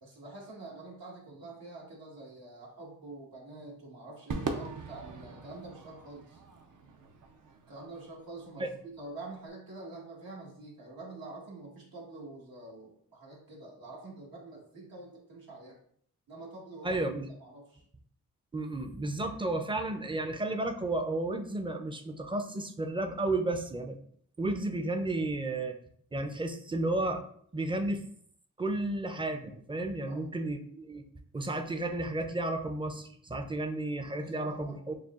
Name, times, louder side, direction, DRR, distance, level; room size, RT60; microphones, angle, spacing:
voice 1, 0.0-6.4 7.7-15.8 16.3-17.0 17.4-17.8 30.1-30.2 34.1-34.8, right 2 dB, 75° right, -3 dB, 1.5 m, -46 dB
Crowd / Fireworks, 4.3-8.8, right 4 dB, 60° right, 0.6 m, -41 dB
voice 2, 16.8-17.3 18.5-24.0 24.4-25.7 26.1-27.2 27.5-28.1 28.6-31.0 31.3-34.9, right 2 dB, 15° right, 6 dB, 0.5 m, -32 dB
6.5 x 2.3 x 2.4 m, 0.63 s
cardioid pair, 70°, 35 cm